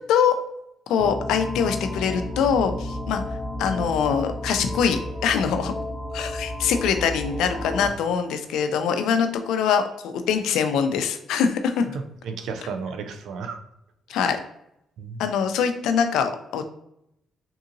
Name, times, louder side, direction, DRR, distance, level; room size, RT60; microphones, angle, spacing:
voice 1, 0.9-3.2 3.6-5.7 6.1-11.8 14.1-14.4 15.2-16.7, left 7 dB, 85° left, 8 dB, 0.4 m, -23 dB
sound 1, 1.0-7.9, left 1 dB, 25° left, 0.5 m, -32 dB
voice 2, 11.9-13.6 14.1-14.2 15.0-15.2, right 5 dB, 80° right, 6 dB, 0.4 m, -33 dB
3.7 x 2.7 x 2.5 m, 0.80 s
cardioid pair, 90°, 0 cm